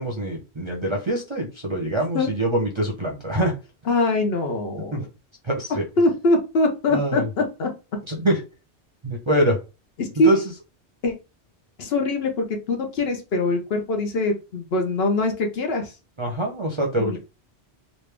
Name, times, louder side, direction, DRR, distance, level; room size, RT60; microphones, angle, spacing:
voice 1, 0.0-3.5 4.9-5.1 5.4-5.8 6.9-7.3 8.1-8.4 9.0-9.6 10.2-10.4 16.2-17.2, right 1 dB, 30° right, 0 dB, 0.6 m, -24 dB
voice 2, 3.9-4.9 6.0-7.7 10.0-10.3 11.0-11.1 11.8-15.9 17.0-17.2, left 2 dB, 65° left, 4 dB, 1.0 m, -23 dB
3.2 x 2.5 x 3.3 m, 0.29 s
omnidirectional pair, 1.1 m